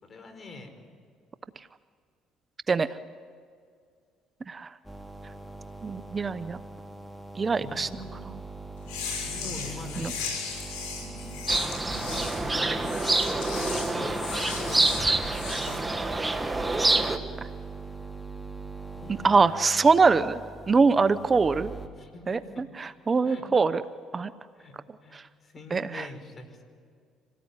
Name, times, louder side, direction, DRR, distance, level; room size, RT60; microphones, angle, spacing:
voice 1, 0.0-0.7 7.6-8.3 8.8-8.9 9.3-10.1 12.4-12.7 13.9-14.9 19.0-19.7 22.0-22.6 23.2-23.4 24.6-24.7 25.0-26.6, left 3 dB, 40° left, 7 dB, 4.9 m, -43 dB
sound 1, 4.8-21.9, right 3 dB, 10° left, 3.1 m, -42 dB
voice 2, 5.8-6.6 7.4-7.9 10.0-10.1 19.1-20.4 20.7-21.7 22.3-23.8 24.1-24.3 25.1-25.2 25.7-26.1, right 4 dB, 30° right, 13 dB, 0.8 m, -23 dB
sound 2, 8.8-15.8, left 5 dB, 85° left, 6.4 m, -37 dB
sound 3, 11.5-17.2, right 2 dB, 15° right, 1.7 m, -27 dB
26.5 x 18.0 x 9.8 m, 2.2 s
supercardioid pair, 85°, 0 cm